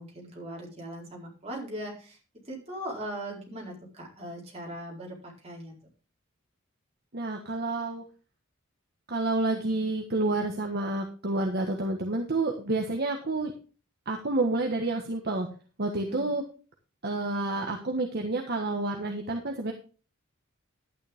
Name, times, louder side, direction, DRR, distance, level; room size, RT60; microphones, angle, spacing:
voice 1, 0.0-2.2 2.5-5.7 15.9-16.3, right 1 dB, 30° right, -2 dB, 4.5 m, -39 dB
voice 2, 7.1-8.0 9.1-13.5 14.1-15.5 15.8-16.4 17.0-19.7, right 2 dB, 50° right, 2 dB, 1.4 m, -29 dB
11.5 x 9.8 x 3.6 m, 0.35 s
head